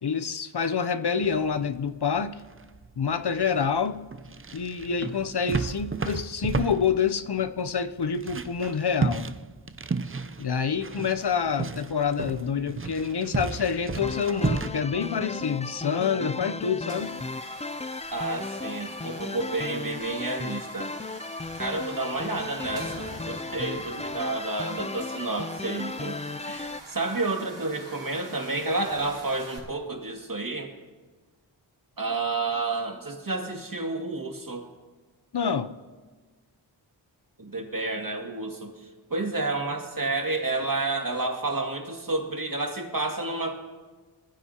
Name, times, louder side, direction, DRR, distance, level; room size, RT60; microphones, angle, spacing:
voice 1, 0.0-2.4 3.0-4.0 4.5-9.3 10.4-17.2 35.3-35.8, left 6 dB, 60° left, 11 dB, 0.7 m, -27 dB
sound 1, 1.2-14.7, right 4 dB, 30° right, 0.6 m, -33 dB
sound 2, 14.0-26.8, left 3 dB, 15° left, 0.4 m, -36 dB
sound 3, 16.8-29.6, right 2 dB, 85° right, 5.2 m, -46 dB
voice 2, 18.1-20.9 21.5-30.7 32.0-34.6 37.4-43.5, right 3 dB, 45° right, 2 dB, 2.4 m, -30 dB
21.5 x 15.5 x 2.9 m, 1.3 s
wide cardioid pair, 45°, 45 cm